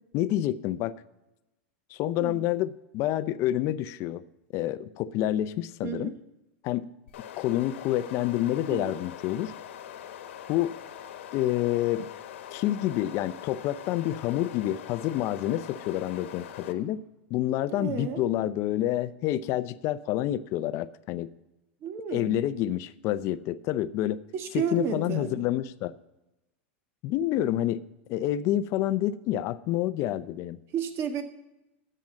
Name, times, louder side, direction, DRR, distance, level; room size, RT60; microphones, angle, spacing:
voice 1, 0.1-1.0 1.9-4.2 4.5-6.1 6.6-6.9 7.4-9.5 10.5-10.8 11.3-12.1 12.5-17.0 17.3-21.3 22.1-24.2 24.5-25.9 27.0-27.8 28.1-30.6, left 13 dB, 45° left, 15 dB, 0.6 m, -28 dB
voice 2, 5.8-6.1 8.7-8.9 17.7-18.2 21.8-22.4 24.3-25.4 30.7-31.2, right 7 dB, 40° right, 7 dB, 1.5 m, -32 dB
sound 1, 7.1-16.7, left 10 dB, 80° left, 1.2 m, -43 dB
10.5 x 7.7 x 7.3 m, 0.98 s
supercardioid pair, 130°, 7 cm